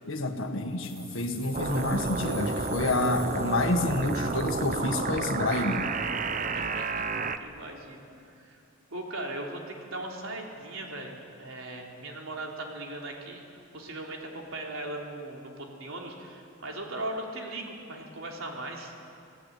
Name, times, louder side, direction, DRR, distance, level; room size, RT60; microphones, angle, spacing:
voice 1, 0.0-5.9, left 2 dB, 70° left, 5 dB, 1.8 m, -28 dB
sound 1, 0.8-5.6, right 2 dB, 15° right, 3.8 m, -47 dB
sound 2, 1.5-7.4, right 3 dB, 35° right, 0.8 m, -31 dB
voice 2, 6.4-7.0 7.4-8.6 8.9-13.4 13.7-18.9, right 2 dB, 80° right, 0 dB, 3.7 m, -39 dB
26.0 x 17.0 x 8.4 m, 2.5 s
head